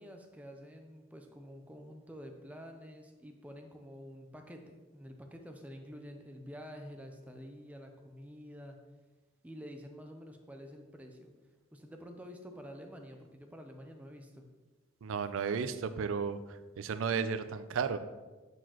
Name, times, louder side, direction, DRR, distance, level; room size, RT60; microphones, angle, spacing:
voice 1, 0.0-8.8 9.4-11.3 11.7-14.5, equal, 5° right, 3 dB, 0.5 m, -49 dB
voice 2, 15.0-18.0, right 6 dB, 70° right, 12 dB, 0.4 m, -34 dB
8.0 x 4.5 x 2.9 m, 1.2 s
head